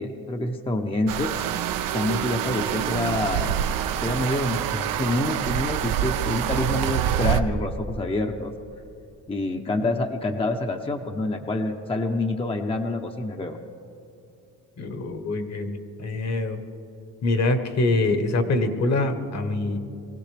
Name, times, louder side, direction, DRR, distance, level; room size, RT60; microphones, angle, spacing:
voice 1, 0.0-1.3 1.9-3.6 4.0-8.5 9.3-13.6, left 2 dB, 15° left, 4 dB, 0.8 m, -27 dB
sound 1, 1.1-7.4, right 10 dB, 75° right, 0.7 m, -26 dB
voice 2, 14.8-16.6 17.2-19.8, left 2 dB, 50° left, 8 dB, 1.4 m, -24 dB
23.0 x 16.0 x 3.4 m, 2.7 s
cardioid pair, 95°, 34 cm